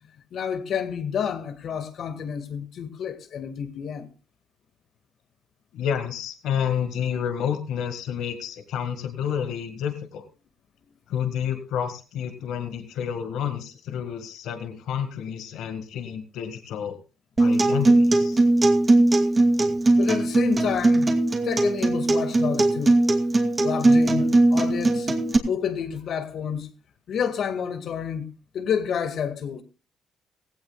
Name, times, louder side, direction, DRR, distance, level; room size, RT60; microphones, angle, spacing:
voice 1, 0.3-4.1 19.9-21.1 21.4-23.0 23.6-25.2 25.5-26.7 27.1-28.3 28.5-29.6, left 7 dB, 65° left, 1.8 m, -29 dB
voice 2, 5.7-10.2 11.1-17.0 17.4-18.4, left 8 dB, 80° left, 1.8 m, -29 dB
Acoustic guitar, 17.4-25.4, right 2 dB, 30° right, 2.5 m, -20 dB
17.0 x 16.5 x 2.3 m
cardioid pair, 80°, 0 cm